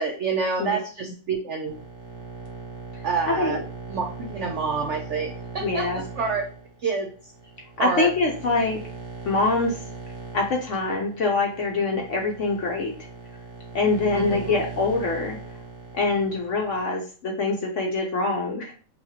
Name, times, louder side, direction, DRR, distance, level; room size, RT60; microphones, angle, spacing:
voice 1, 0.0-1.8 3.0-3.6 3.9-6.4 6.8-7.3 7.8-8.1 14.1-14.6, right 4 dB, 85° right, 3 dB, 0.6 m, -28 dB
sound 1, 1.6-16.8, right 4 dB, 50° right, 1.1 m, -39 dB
voice 2, 3.3-3.6 5.6-6.0 7.8-8.8 9.3-9.8 10.3-12.9 13.7-15.4 15.9-18.7, left 3 dB, 60° left, 1 dB, 0.8 m, -24 dB
5.6 x 2.4 x 2.8 m, 0.39 s
omnidirectional pair, 1.9 m